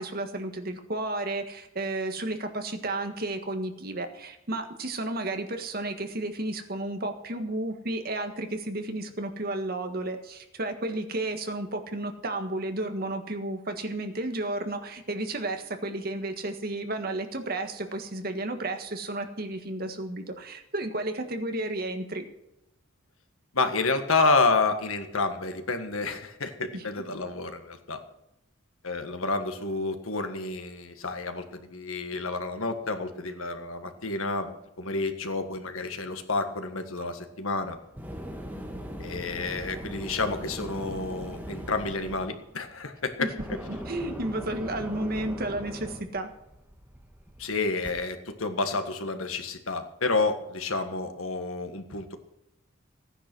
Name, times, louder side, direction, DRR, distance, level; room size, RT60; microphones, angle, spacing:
voice 1, 0.0-22.2 26.7-26.8 43.2-43.3 43.7-46.3, right 2 dB, 45° right, 6 dB, 1.6 m, -32 dB
voice 2, 23.5-28.0 28.8-37.8 39.0-43.6 47.4-52.2, left 3 dB, 80° left, 7 dB, 1.7 m, -29 dB
sound 1, 37.5-47.9, equal, 10° right, 1.6 m, -40 dB
15.5 x 10.0 x 6.2 m, 0.85 s
head